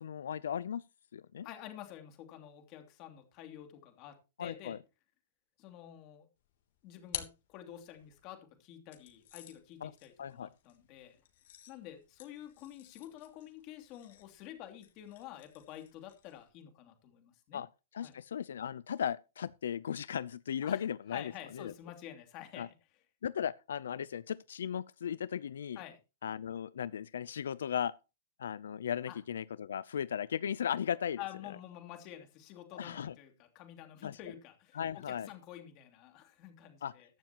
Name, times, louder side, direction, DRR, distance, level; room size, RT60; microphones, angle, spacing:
voice 1, 0.0-0.8 1.1-1.5 4.4-4.8 9.8-9.9 10.2-10.5 17.5-17.7 17.9-21.7 22.6-22.7 23.2-25.8 26.2-27.9 28.4-31.2 32.7-33.1 34.0-34.2 34.7-35.3 36.8-36.9, left 8 dB, 80° left, 0.5 m, -36 dB
voice 2, 1.4-4.8 5.6-6.3 6.8-11.2 11.7-17.6 18.0-18.1 20.6-20.8 21.1-22.7 25.7-26.0 29.1-29.2 31.2-37.1, left 12 dB, 30° left, 2.8 m, -49 dB
sound 1, 6.4-8.2 8.9-16.5, left 11 dB, 55° left, 3.1 m, -50 dB
15.0 x 12.0 x 3.0 m
hypercardioid pair, 170°, 0 cm